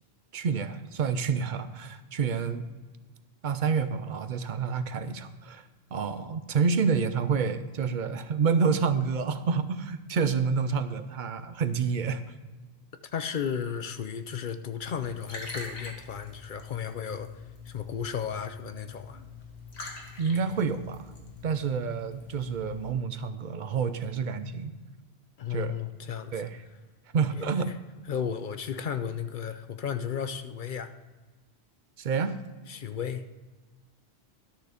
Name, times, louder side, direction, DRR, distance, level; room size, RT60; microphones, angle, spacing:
voice 1, 0.3-2.7 3.4-5.6 5.9-12.2 20.2-21.1 21.4-24.7 25.5-25.8 26.3-26.6 27.1-27.7 32.0-32.4, right 5 dB, 55° right, 11 dB, 0.7 m, -28 dB
voice 2, 13.0-17.3 17.7-19.2 25.4-26.3 27.4-27.5 28.1-30.9 32.7-33.2, left 7 dB, 55° left, 10 dB, 0.7 m, -34 dB
Liquid, 14.8-22.9, left 3 dB, 90° left, 2.0 m, -44 dB
11.5 x 6.7 x 5.0 m, 1.2 s
omnidirectional pair, 1.1 m